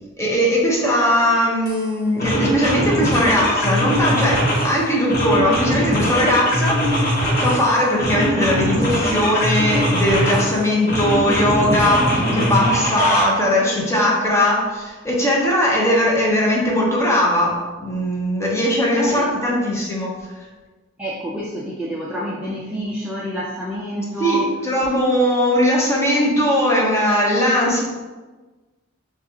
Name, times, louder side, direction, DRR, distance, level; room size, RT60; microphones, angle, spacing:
voice 1, 0.2-20.1 24.2-27.8, left 1 dB, 15° left, -3 dB, 0.8 m, -19 dB
sound 1, 1.7-1.8 2.2-4.7 5.1-7.6 8.0-10.5 10.9-13.2, equal, 45° left, 1.0 m, -21 dB
voice 2, 19.0-19.6 21.0-24.6, equal, 5° right, -6 dB, 0.3 m, -28 dB
6.6 x 2.4 x 2.8 m, 1.3 s
head